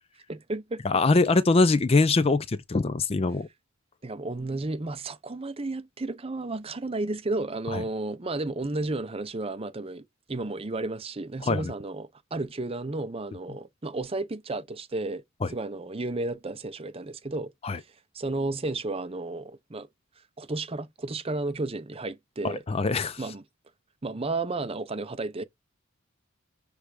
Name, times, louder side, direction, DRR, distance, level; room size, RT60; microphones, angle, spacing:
voice 1, 0.3-0.8 4.0-10.0 10.3-15.2 15.5-17.5 18.1-19.9 20.4-22.6 23.2-23.4 24.0-25.4, right 2 dB, 25° right, 0.6 m, -32 dB
voice 2, 0.8-3.5 7.7-7.8 11.4-11.7 15.4-15.5 17.6-17.8 22.4-23.2, left 3 dB, 25° left, 0.4 m, -23 dB
6.3 x 3.4 x 4.8 m
head